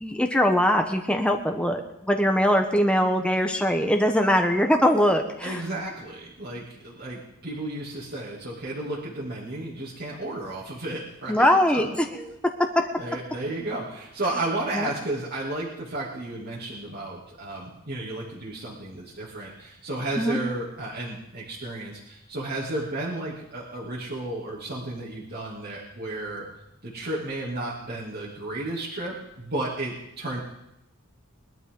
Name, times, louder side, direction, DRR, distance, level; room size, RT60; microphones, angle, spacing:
voice 1, 0.0-5.6 11.3-12.1 12.7-13.1 14.7-14.9 20.2-20.4, equal, 5° left, 4 dB, 1.1 m, -22 dB
voice 2, 5.4-11.5 11.7-11.8 13.0-26.5 26.8-30.4, right 2 dB, 50° right, -7 dB, 2.7 m, -33 dB
22.0 x 12.0 x 3.9 m, 0.86 s
head